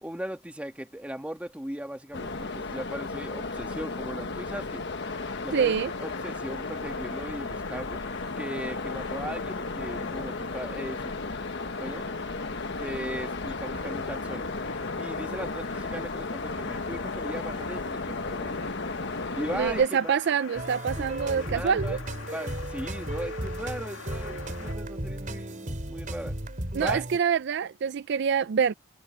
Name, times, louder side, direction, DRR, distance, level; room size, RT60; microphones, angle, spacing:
voice 1, 0.0-4.8 5.4-5.8 6.0-8.0 8.4-11.1 11.8-12.1 12.8-14.5 15.0-18.5 19.3-20.2 20.9-21.1 21.3-22.0 22.2-26.4 26.8-27.0, equal, 5° right, 2.0 m, -38 dB
sound 1, 2.1-19.9, left 3 dB, 60° left, 1.3 m, -34 dB
sound 2, 5.0-24.7, left 4 dB, 85° left, 2.0 m, -43 dB
voice 2, 5.5-5.9 19.5-22.0 26.7-28.7, right 7 dB, 60° right, 0.4 m, -25 dB
sound 3, 20.6-27.2, right 1 dB, 40° right, 3.9 m, -35 dB
head